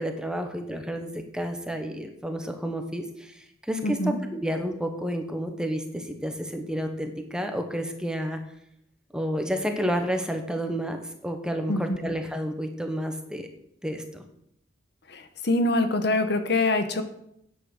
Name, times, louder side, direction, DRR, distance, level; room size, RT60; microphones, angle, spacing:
voice 1, 0.0-3.3 3.7-8.4 9.1-13.5 13.8-14.2, equal, 5° right, 5 dB, 1.1 m, -30 dB
voice 2, 3.8-4.2 11.7-12.1 15.1-17.0, left 2 dB, 60° left, 8 dB, 1.1 m, -25 dB
9.9 x 7.7 x 6.5 m, 0.74 s
head